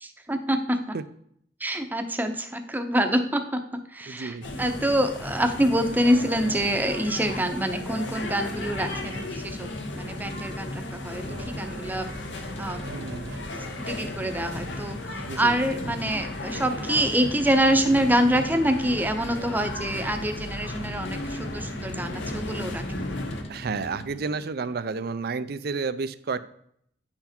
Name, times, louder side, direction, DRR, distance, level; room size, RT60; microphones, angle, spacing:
voice 1, 0.0-1.0 1.6-9.7 10.0-12.1 12.6-12.8 13.9-22.8, right 1 dB, 10° right, 6 dB, 0.7 m, -26 dB
voice 2, 4.1-4.5 12.9-13.3 15.3-15.6 23.5-26.4, right 4 dB, 60° right, 14 dB, 0.5 m, -31 dB
sound 1, 4.4-23.4, left 2 dB, 80° left, 1.3 m, -35 dB
sound 2, 8.3-24.4, left 1 dB, 35° left, 1.0 m, -42 dB
Race car auto racing / Accelerating revving vroom, 10.2-15.6, right 4 dB, 80° right, 1.1 m, -48 dB
9.8 x 5.8 x 4.4 m, 0.68 s
head